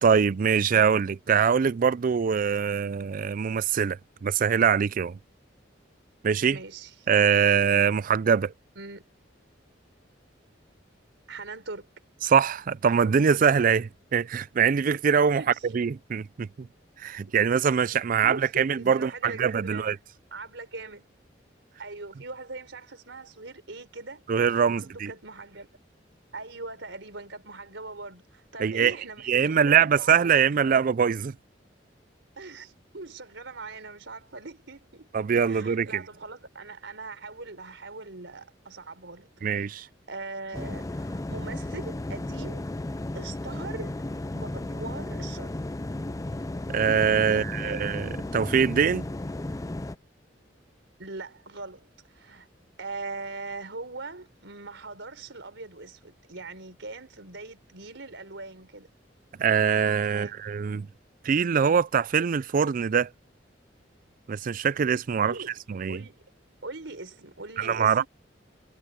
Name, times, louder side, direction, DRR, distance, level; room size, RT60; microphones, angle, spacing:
voice 1, 0.0-5.2 6.2-6.6 7.1-8.5 12.2-15.4 15.7-16.7 17.0-20.0 24.3-25.1 28.6-28.9 29.3-31.3 35.1-36.0 39.4-39.9 46.7-49.0 59.4-60.9 61.2-63.1 64.3-65.3 65.7-66.0 67.6-68.0, right 7 dB, 45° right, 0.4 m, -23 dB
voice 2, 6.5-7.1 8.8-9.0 11.3-11.9 15.4-15.7 18.2-19.9 20.3-21.0 21.8-24.2 24.7-25.7 26.3-30.9 32.4-35.1 35.5-42.6 43.1-43.9 44.3-45.6 47.2-48.0 51.0-52.5 52.8-58.9 60.1-60.4 65.2-65.5 65.9-66.3 66.6-68.1, right 3 dB, 75° right, 4.2 m, -41 dB
sound 1, 40.5-50.0, left 1 dB, 20° left, 0.5 m, -34 dB
head